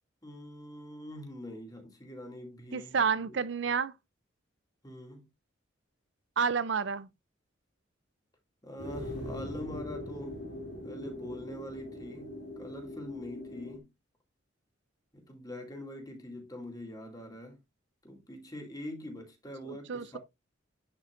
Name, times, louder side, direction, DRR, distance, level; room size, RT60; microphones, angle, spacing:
voice 1, 0.2-3.4 4.8-5.3 8.6-10.4 10.8-13.9 15.1-17.6 18.0-20.2, left 1 dB, 20° left, 2.4 m, -44 dB
voice 2, 2.7-3.9 6.4-7.1 19.6-20.2, right 6 dB, 65° right, 0.5 m, -30 dB
sound 1, 8.8-13.8, left 1 dB, 60° left, 2.4 m, -41 dB
10.5 x 5.6 x 2.5 m
head